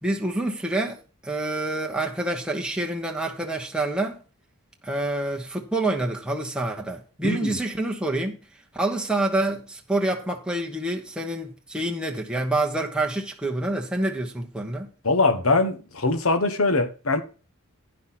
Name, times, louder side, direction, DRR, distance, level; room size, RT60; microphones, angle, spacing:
voice 1, 0.0-4.2 4.8-8.4 8.7-14.9, right 2 dB, 5° right, 1.1 m, -27 dB
voice 2, 7.2-7.6 15.0-17.2, left 3 dB, 70° left, 1.2 m, -22 dB
9.9 x 5.8 x 5.9 m
head